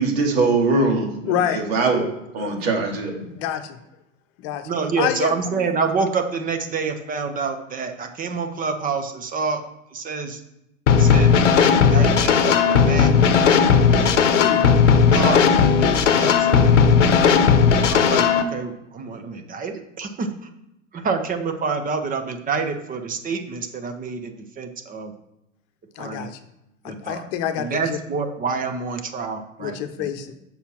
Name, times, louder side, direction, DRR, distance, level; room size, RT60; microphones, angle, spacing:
voice 1, 0.0-2.0 2.3-3.1, right 3 dB, 50° right, 1 dB, 2.3 m, -21 dB
voice 2, 1.3-1.6 2.4-2.6 3.4-3.8 4.4-4.7 5.0-5.7 14.3-14.6 26.0-26.4 26.8-28.0 29.6-30.3, left 10 dB, 40° left, 8 dB, 1.1 m, -27 dB
voice 3, 4.6-9.6 9.9-10.4 10.9-11.3 11.7-13.1 13.9-14.3 15.1-16.8 17.9-20.5 20.9-25.1 26.0-26.3 26.8-27.3 27.6-30.1, right 5 dB, 20° right, 6 dB, 1.1 m, -27 dB
sound 1, 10.9-18.4, left 6 dB, 65° left, 0.9 m, -16 dB
7.1 x 5.4 x 6.1 m, 0.86 s
figure-of-eight pair, 85°, 39 cm